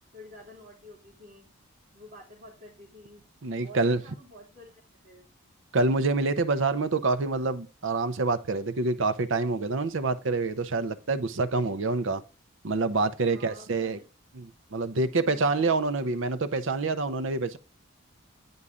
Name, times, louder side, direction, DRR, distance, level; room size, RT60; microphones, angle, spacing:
voice 1, 0.1-1.5 1.9-3.2 3.6-5.3 13.3-14.0 15.2-15.8, left 1 dB, 40° right, 3.1 m, -49 dB
voice 2, 3.4-4.0 5.7-12.2 12.6-14.0 14.4-17.6, right 3 dB, 65° right, 0.6 m, -27 dB
9.7 x 5.5 x 3.7 m
head